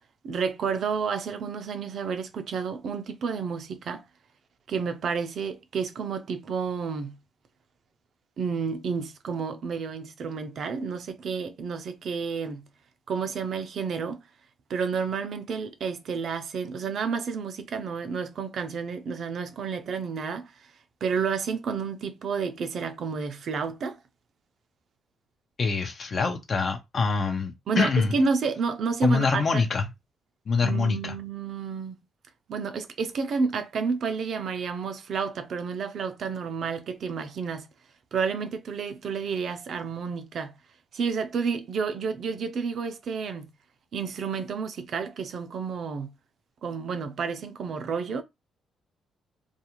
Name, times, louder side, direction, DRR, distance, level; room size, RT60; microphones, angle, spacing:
voice 1, 0.2-4.0 4.7-7.2 8.4-12.7 13.1-14.2 14.7-20.5 21.0-24.0 27.7-29.6 30.6-32.0 32.5-37.7 38.1-40.6 40.9-43.5 43.9-46.1 46.6-48.2, right 5 dB, 60° right, 0.5 m, -30 dB
voice 2, 25.6-28.2 29.0-29.9 30.5-31.2, left 4 dB, 45° left, 0.6 m, -25 dB
2.4 x 2.4 x 2.9 m
cardioid pair, 90°, 0 cm